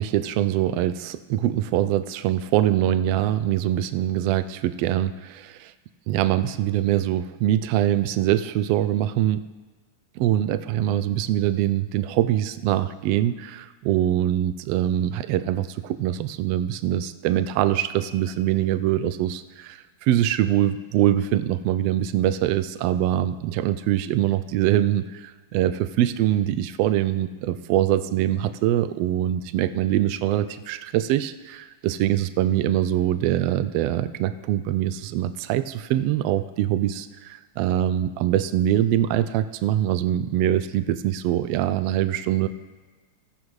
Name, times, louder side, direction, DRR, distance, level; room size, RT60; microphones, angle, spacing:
voice 1, 0.0-5.7 6.1-9.4 10.2-42.5, right 12 dB, 90° right, 11 dB, 1.4 m, -23 dB
15.5 x 13.0 x 3.2 m, 1.3 s
omnidirectional pair, 3.3 m